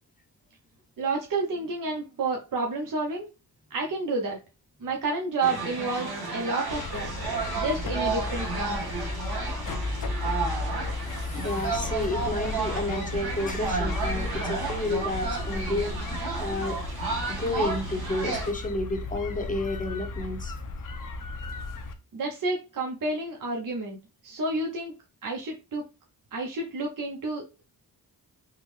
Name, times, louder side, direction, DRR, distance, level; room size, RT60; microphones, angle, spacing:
voice 1, 1.0-3.3 3.7-4.4 4.8-7.1 7.6-9.1 22.1-24.0 24.2-24.9 25.2-25.9 26.3-27.6, right 3 dB, 55° right, 0.8 m, -30 dB
sound 1, 5.4-18.5, right 4 dB, 75° right, 1.2 m, -32 dB
sound 2, 6.7-21.9, left 2 dB, 55° left, 0.6 m, -34 dB
voice 2, 11.3-16.8 17.3-20.6, left 2 dB, 20° left, 0.8 m, -31 dB
3.6 x 2.1 x 3.1 m
cardioid pair, 65°, 39 cm